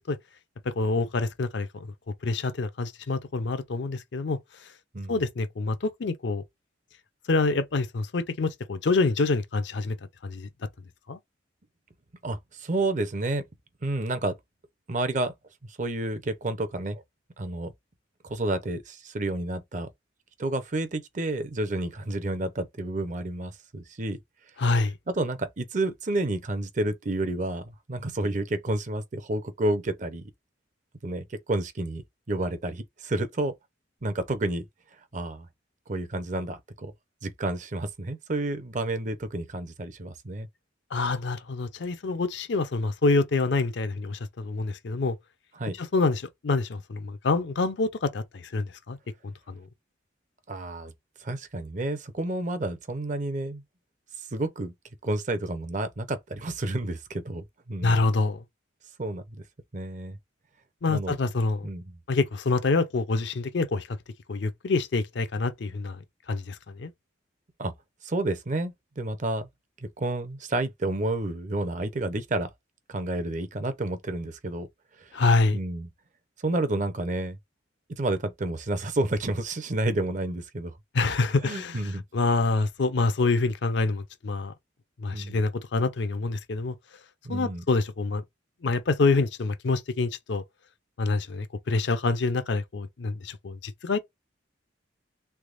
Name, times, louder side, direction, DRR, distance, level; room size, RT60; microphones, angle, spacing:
voice 1, 0.7-1.9 2.2-4.4 5.1-6.4 7.3-10.0 10.2-10.5 11.1-11.2 24.6-24.9 40.9-45.2 45.8-49.0 49.2-49.7 57.8-58.4 60.8-61.7 62.1-64.0 64.3-66.0 66.3-66.9 75.1-75.6 80.9-84.5 85.0-86.8 87.3-88.2 88.6-90.4 91.0-94.0, left 3 dB, 65° left, 0.5 m, -26 dB
voice 2, 12.2-13.4 13.8-14.4 14.9-15.3 15.8-17.0 17.4-17.7 18.2-19.9 20.4-24.2 25.1-30.3 31.0-32.0 32.3-33.5 34.0-34.6 35.1-35.5 35.9-36.9 37.2-40.5 45.6-45.8 50.5-50.9 51.2-53.6 54.3-54.7 55.0-58.0 59.0-59.4 59.7-60.2 60.9-61.2 61.6-61.8 67.6-67.7 68.0-69.5 69.8-72.5 72.9-74.7 75.0-75.1 75.5-75.9 76.4-77.4 77.9-80.7 81.4-82.0 85.1-85.4 87.2-87.6, right 2 dB, 40° right, 0.6 m, -30 dB
3.4 x 3.3 x 2.5 m
head